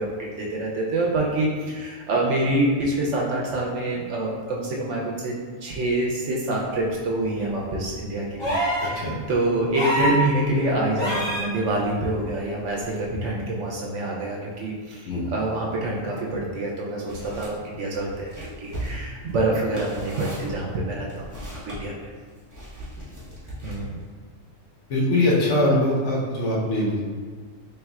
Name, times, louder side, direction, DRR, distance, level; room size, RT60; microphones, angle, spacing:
voice 1, 0.0-5.3 5.6-22.1 23.6-24.0, right 1 dB, 70° right, -2 dB, 0.9 m, -26 dB
sound 1, 8.4-8.9 9.7-10.2 11.0-11.5 12.9-13.0, equal, 25° left, 0.8 m, -24 dB
sound 2, 17.1-17.5 17.9-21.8 22.5-24.0, right 1 dB, 15° right, 0.9 m, -37 dB
voice 2, 24.9-27.0, left 1 dB, 65° left, -6 dB, 1.1 m, -22 dB
4.3 x 3.3 x 2.3 m, 1.6 s
omnidirectional pair, 1.4 m